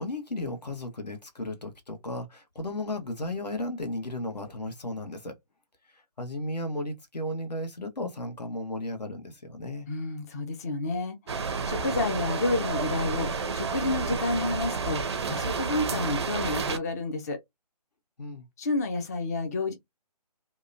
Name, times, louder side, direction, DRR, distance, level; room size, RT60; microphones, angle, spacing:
voice 1, 0.0-5.3 5.9-9.9 18.2-18.4, left 1 dB, 90° left, 1.0 m, -34 dB
voice 2, 9.9-17.4 18.6-19.7, left 2 dB, 25° left, 0.4 m, -30 dB
sound 1, 11.3-16.8, right 4 dB, 45° right, 0.5 m, -30 dB
2.8 x 2.1 x 2.4 m
figure-of-eight pair, 150°, 20 cm